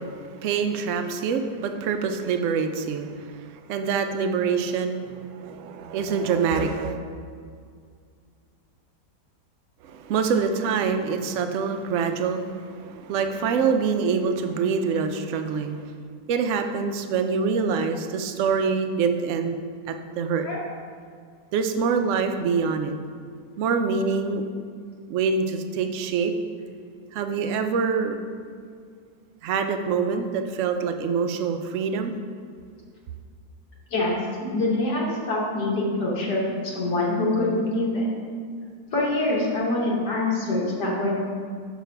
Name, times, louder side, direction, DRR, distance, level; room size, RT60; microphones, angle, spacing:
voice 1, 0.0-7.0 9.8-15.9 16.3-19.6 19.9-20.5 21.5-23.0 23.6-24.4 25.1-26.3 27.1-28.2 29.4-32.1, right 5 dB, 65° right, 6 dB, 0.8 m, -25 dB
voice 2, 34.5-38.0 38.9-41.2, left 2 dB, 75° left, -4 dB, 1.9 m, -25 dB
7.0 x 5.1 x 4.5 m, 2.2 s
omnidirectional pair, 1.8 m